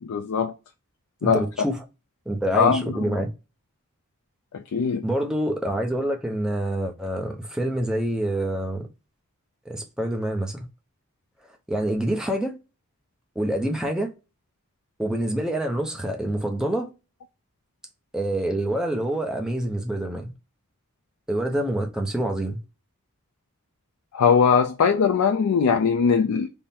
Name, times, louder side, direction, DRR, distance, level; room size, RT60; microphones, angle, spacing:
voice 1, 0.0-0.5 1.2-1.7 2.5-3.2 4.5-5.0 24.1-26.5, left 6 dB, 75° left, 0.4 m, -21 dB
voice 2, 1.2-1.8 2.3-3.3 5.0-8.9 9.7-10.7 11.7-12.6 13.4-14.1 15.0-16.9 18.1-20.3 21.3-22.6, right 1 dB, 5° right, 0.5 m, -26 dB
3.6 x 2.1 x 4.0 m
head